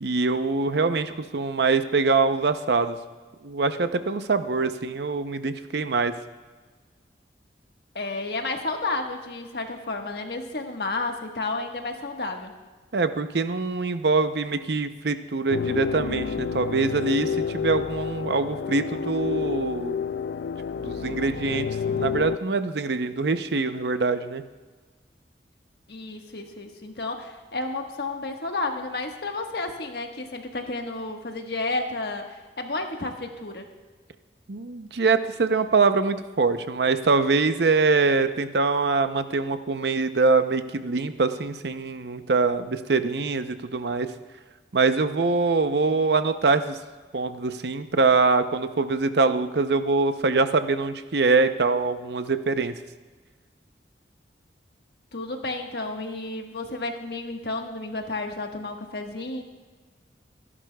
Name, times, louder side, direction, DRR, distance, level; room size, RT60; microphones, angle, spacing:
voice 1, 0.0-3.0 3.4-6.1 12.9-20.0 20.8-24.4 34.5-44.1 44.7-46.8 47.1-52.8, right 4 dB, 70° right, 10 dB, 0.7 m, -24 dB
voice 2, 7.9-12.5 25.9-33.7 55.1-59.4, left 2 dB, 65° left, 3 dB, 1.4 m, -31 dB
sound 1, 15.5-22.4, left 6 dB, 85° left, 0.4 m, -29 dB
26.5 x 11.0 x 2.3 m, 1.3 s
head